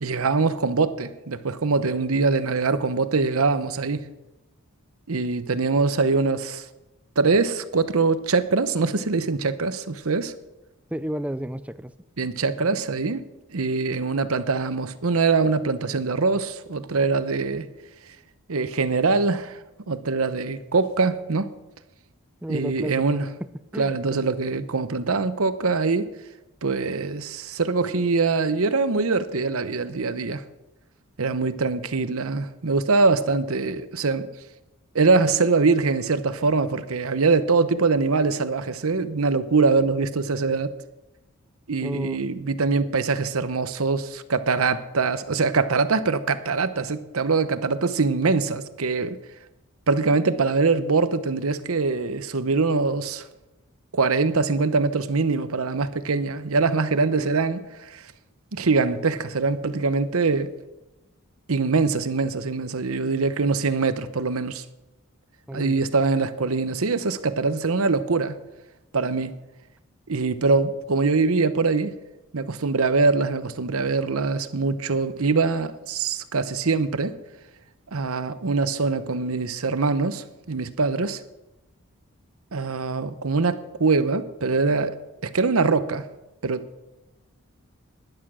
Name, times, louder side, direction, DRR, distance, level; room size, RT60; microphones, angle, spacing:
voice 1, 0.0-4.0 5.1-6.6 7.2-10.3 12.2-13.2 13.5-17.7 18.5-19.6 19.9-21.5 22.5-23.3 23.8-26.1 26.6-30.4 31.2-34.3 34.9-40.7 41.7-49.2 49.9-53.2 53.9-58.0 58.5-60.5 61.5-64.6 65.5-68.4 68.9-69.3 70.1-71.9 72.3-77.2 77.9-81.2 82.5-85.0 85.2-86.1 86.4-86.6, right 4 dB, 75° right, 0.8 m, -23 dB
voice 2, 10.9-11.9 22.4-23.2 23.7-23.9 41.8-42.2 57.1-57.3 65.5-65.8, equal, 5° right, 0.4 m, -32 dB
12.5 x 11.0 x 6.2 m
head